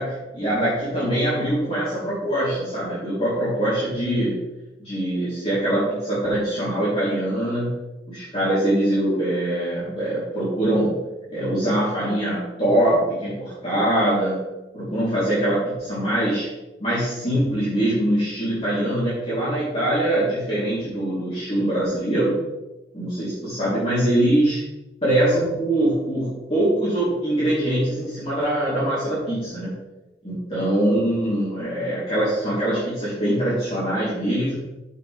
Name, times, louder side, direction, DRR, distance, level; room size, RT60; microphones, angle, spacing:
voice 1, 0.0-4.4 4.8-7.8 8.1-11.0 11.3-14.5 14.7-16.5 16.8-22.4 22.9-24.6 25.0-29.7 30.2-34.6, right 1 dB, 35° left, -11 dB, 3.4 m, -23 dB
10.5 x 7.1 x 3.4 m, 1.0 s
head